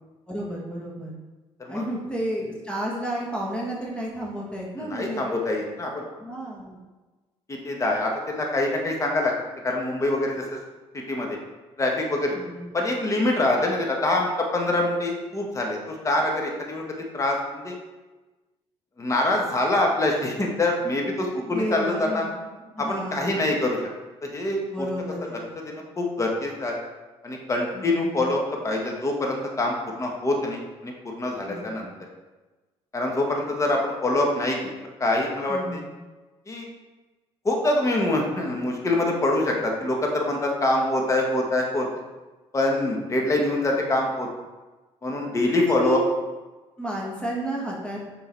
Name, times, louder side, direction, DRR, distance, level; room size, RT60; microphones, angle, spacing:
voice 1, 0.3-1.2 1.7-5.3 6.2-6.8 12.3-12.7 21.4-23.4 24.7-25.5 27.7-28.4 31.4-31.8 35.5-36.0 45.7-46.0 46.8-48.1, right 1 dB, 10° left, -3 dB, 1.5 m, -32 dB
voice 2, 4.8-6.0 7.5-9.3 9.6-10.4 11.1-11.4 11.8-12.3 12.7-16.8 17.1-17.4 17.6-17.8 19.0-22.3 22.8-23.8 24.2-24.9 25.7-26.8 27.2-31.9 32.9-34.7 35.0-35.8 36.5-36.7 37.4-41.9 42.5-44.3 45.0-46.0, left 2 dB, 25° left, 0 dB, 1.3 m, -25 dB
6.6 x 3.8 x 4.5 m, 1.2 s
cardioid pair, 95°, 11 cm